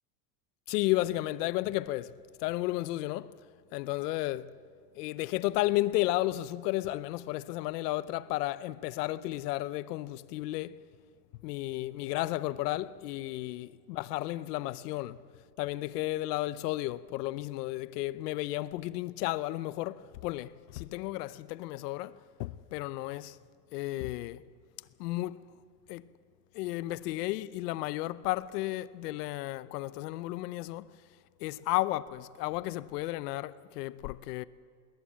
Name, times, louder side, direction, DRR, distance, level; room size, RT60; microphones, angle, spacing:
voice 1, 0.7-3.3 3.7-4.5 4.9-10.8 11.4-15.2 15.6-23.4 23.7-24.4 25.0-25.4 25.9-26.0 26.5-30.9 31.4-34.4, left 17 dB, 80° left, 0.8 m, -33 dB
21.0 x 18.5 x 7.5 m
supercardioid pair, 150°, 47 cm